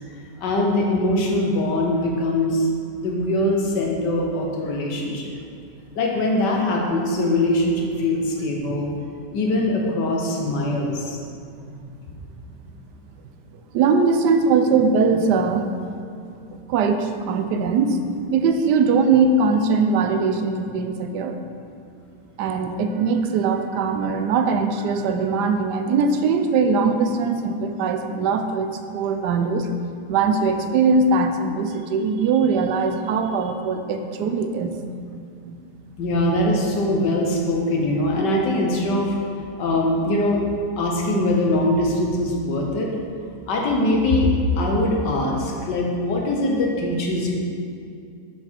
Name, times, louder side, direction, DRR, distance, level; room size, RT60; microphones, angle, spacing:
voice 1, 0.4-2.7 3.0-5.3 5.9-8.9 9.3-11.2 36.0-39.1 39.6-40.4 40.8-42.9 43.5-47.3, left 1 dB, 80° left, -1 dB, 1.7 m, -22 dB
voice 2, 13.7-15.7 16.7-18.0 18.3-21.4 22.4-29.7 30.1-34.7 35.1-35.6, right 4 dB, 80° right, 6 dB, 1.2 m, -21 dB
7.0 x 5.9 x 4.5 m, 2.4 s
omnidirectional pair, 1.8 m